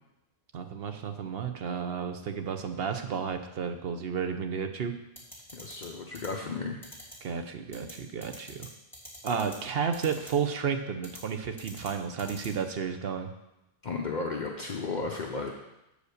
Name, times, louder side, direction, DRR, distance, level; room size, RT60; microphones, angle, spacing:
voice 1, 0.5-4.9 7.2-8.7 9.2-13.3, right 6 dB, 70° right, 7 dB, 0.9 m, -32 dB
sound 1, 5.2-5.9 6.1-6.3 6.8-7.1 7.7-7.9 8.2-8.7 8.9-9.6 9.9-10.3 11.0-11.2 11.6-11.9 12.2-12.5, left 1 dB, ahead, 2.6 m, -45 dB
voice 2, 5.5-6.8 13.8-15.5, left 4 dB, 50° left, 1 dB, 0.8 m, -34 dB
8.2 x 5.0 x 6.5 m, 0.91 s
omnidirectional pair, 1.0 m